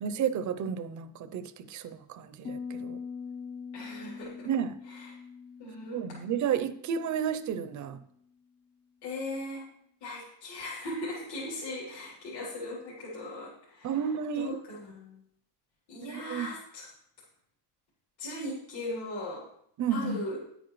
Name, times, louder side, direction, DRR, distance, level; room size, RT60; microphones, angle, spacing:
voice 1, 0.0-3.0 4.5-4.8 5.9-8.0 13.8-14.6 16.1-16.5 19.8-20.2, right 8 dB, 45° right, 12 dB, 0.6 m, -32 dB
Piano, 2.4-8.0, left 6 dB, 15° left, 0.7 m, -43 dB
voice 2, 3.7-4.5 4.9-5.1 5.6-6.0 9.0-9.7 10.0-13.9 14.3-15.2 15.9-16.9 18.2-19.4 19.9-20.4, left 1 dB, 65° left, -7 dB, 3.5 m, -38 dB
10.5 x 9.1 x 3.1 m, 0.70 s
cardioid pair, 145°, 41 cm